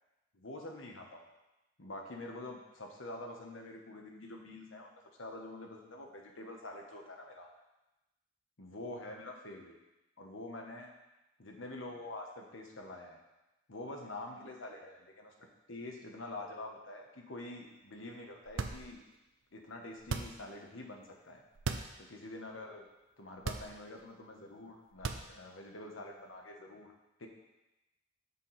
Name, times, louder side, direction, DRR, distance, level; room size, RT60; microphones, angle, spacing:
voice 1, 0.3-1.2 1.8-4.9 5.2-7.5 8.6-9.7 10.2-10.9 11.4-13.2 13.7-15.3 15.7-19.0 19.5-21.4 22.0-22.9 23.2-26.9 27.2-27.3, left 2 dB, 85° left, 1 dB, 1.2 m, -46 dB
sound 1, 18.4-19.2 20.0-20.6 21.5-22.0 22.4-22.5 23.4-24.0 24.9-25.6, right 4 dB, 80° right, 0.6 m, -38 dB
7.2 x 6.0 x 4.1 m, 0.98 s
head